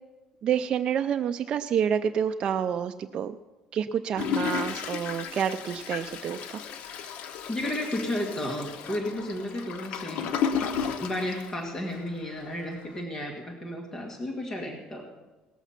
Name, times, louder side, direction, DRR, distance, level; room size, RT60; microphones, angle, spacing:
voice 1, 0.4-3.4 3.7-6.4, right 8 dB, 45° right, 7 dB, 0.4 m, -28 dB
Toilet flush, 4.2-12.2 12.7-12.8 12.9-13.0, left 7 dB, 65° left, 0.9 m, -33 dB
voice 2, 7.5-10.3 11.0-15.0, left 1 dB, 20° left, 0 dB, 1.8 m, -33 dB
18.5 x 7.1 x 5.8 m, 1.1 s
cardioid pair, 135°, 2 cm